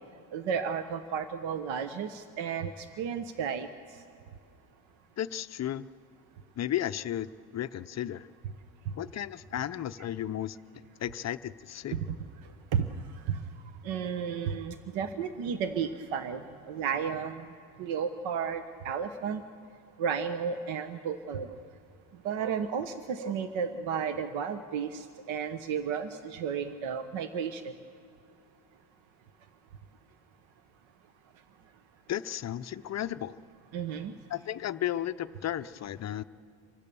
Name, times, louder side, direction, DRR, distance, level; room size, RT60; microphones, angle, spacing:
voice 1, 0.3-3.7 11.9-12.1 12.7-12.9 13.3-13.4 13.8-17.4 17.8-19.4 20.0-21.5 22.2-27.7 33.7-34.1, right 7 dB, 70° right, 9 dB, 1.1 m, -33 dB
voice 2, 5.2-5.9 6.6-8.3 9.0-10.6 11.0-12.0 32.1-33.4 34.3-36.2, left 11 dB, 35° left, 12 dB, 0.5 m, -34 dB
28.5 x 24.0 x 6.9 m, 2.6 s
cardioid pair, 130°, 48 cm